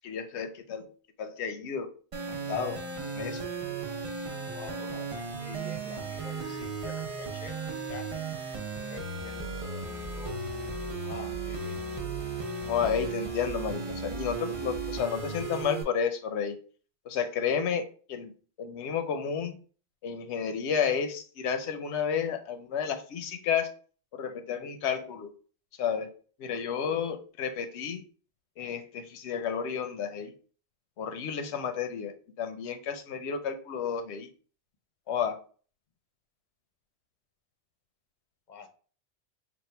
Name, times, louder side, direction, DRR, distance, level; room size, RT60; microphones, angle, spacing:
voice 1, 0.0-0.9 1.2-1.9 2.3-2.8 3.1-3.5 12.6-16.6 17.1-18.3 18.6-19.6 20.0-23.7 24.1-25.3 25.8-26.1 26.4-28.0 28.6-30.3 31.0-34.3 35.1-35.4, left 7 dB, 90° left, 6 dB, 0.9 m, -31 dB
sound 1, 2.1-15.8, right 4 dB, 35° right, 0.6 m, -35 dB
voice 2, 4.5-8.1 8.8-10.4 11.0-11.8 38.5-38.7, left 5 dB, 50° left, 5 dB, 0.7 m, -47 dB
3.6 x 2.4 x 4.3 m, 0.41 s
omnidirectional pair, 1.1 m